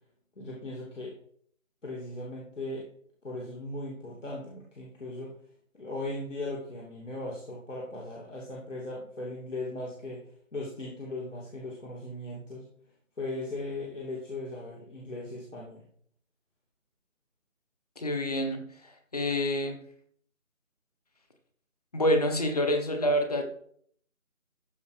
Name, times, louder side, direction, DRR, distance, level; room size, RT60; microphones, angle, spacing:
voice 1, 0.4-1.1 1.8-2.9 3.2-5.3 5.7-12.6 13.2-15.8, left 2 dB, 60° left, -4 dB, 2.9 m, -38 dB
voice 2, 18.0-19.8 21.9-23.4, left 1 dB, 30° left, 5 dB, 1.3 m, -27 dB
13.5 x 5.1 x 4.9 m, 0.63 s
figure-of-eight pair, 165°, 41 cm